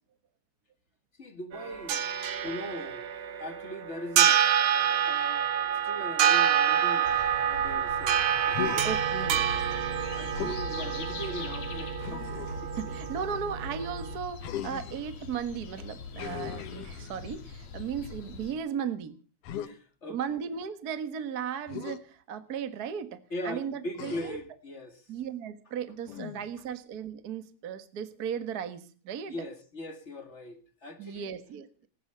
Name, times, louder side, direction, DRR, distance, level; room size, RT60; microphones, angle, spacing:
voice 1, 1.2-2.1 2.4-4.5 5.0-5.5 5.8-7.1 7.4-8.2 8.5-8.9 9.6-13.0 19.6-20.2 23.3-25.0 29.3-31.4, left 1 dB, 25° left, 1.9 m, -40 dB
sound 1, 1.5-14.2, right 9 dB, 60° right, 2.0 m, -27 dB
sound 2, 7.0-18.5, left 5 dB, 70° left, 3.4 m, -43 dB
Human voice, 8.5-9.1 10.3-10.7 12.0-12.7 14.4-15.1 16.2-17.4 19.4-19.7 21.7-22.0 24.0-24.5 26.1-26.6, left 10 dB, 85° left, 2.8 m, -38 dB
voice 2, 8.8-9.4 12.8-19.1 20.1-24.1 25.1-29.3 31.0-31.9, right 7 dB, 45° right, 1.3 m, -36 dB
19.5 x 11.0 x 6.7 m
omnidirectional pair, 3.5 m